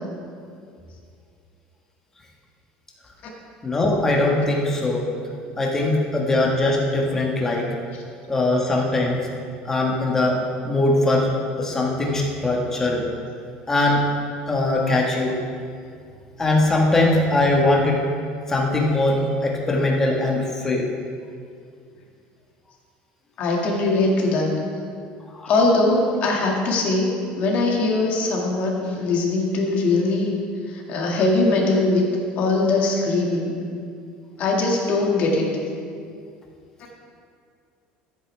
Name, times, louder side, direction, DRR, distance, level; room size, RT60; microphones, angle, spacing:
voice 1, 3.6-5.1 5.6-7.7 8.3-9.2 9.6-10.4 10.6-11.3 11.6-13.0 13.7-14.0 14.5-15.3 16.4-18.0 18.5-20.9 25.4-25.5, left 2 dB, 15° left, -2 dB, 1.5 m, -21 dB
voice 2, 23.4-24.6 25.5-30.3 30.7-32.1 32.4-33.6 34.4-35.5, left 2 dB, 45° left, -1 dB, 2.0 m, -21 dB
14.0 x 8.4 x 3.4 m, 2.3 s
cardioid pair, 150°, 3 cm